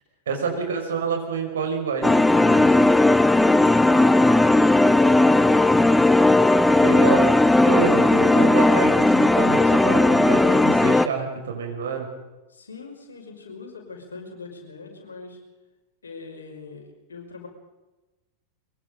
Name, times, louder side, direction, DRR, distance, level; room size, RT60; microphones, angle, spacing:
voice 1, 0.3-2.9 6.8-12.1, right 6 dB, 65° right, 3 dB, 5.8 m, -28 dB
sound 1, 2.0-11.1, left 2 dB, 5° left, 0.8 m, -17 dB
voice 2, 3.8-6.6 12.5-15.4 16.0-17.5, left 4 dB, 70° left, 2 dB, 5.8 m, -42 dB
23.5 x 22.5 x 5.3 m, 1.1 s
figure-of-eight pair, 90°, 0 cm